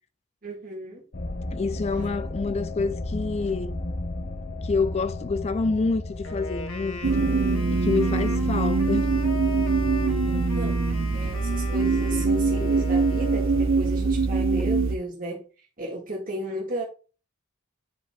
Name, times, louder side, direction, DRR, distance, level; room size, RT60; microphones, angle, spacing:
voice 1, 0.4-1.0 1.9-2.1 10.3-10.8 11.1-15.5 15.8-16.8, equal, 40° right, 1.9 m, -34 dB
sound 1, 1.1-8.3, left 2 dB, 45° left, 0.8 m, -34 dB
voice 2, 1.5-3.8 4.6-7.3 7.7-9.1, left 4 dB, 30° left, 0.4 m, -27 dB
Wind instrument woodwind instrument, 6.2-13.8, left 2 dB, 80° left, 1.9 m, -38 dB
sound 2, 7.0-15.0, right 3 dB, 65° right, 0.7 m, -23 dB
10.0 x 5.2 x 2.3 m
head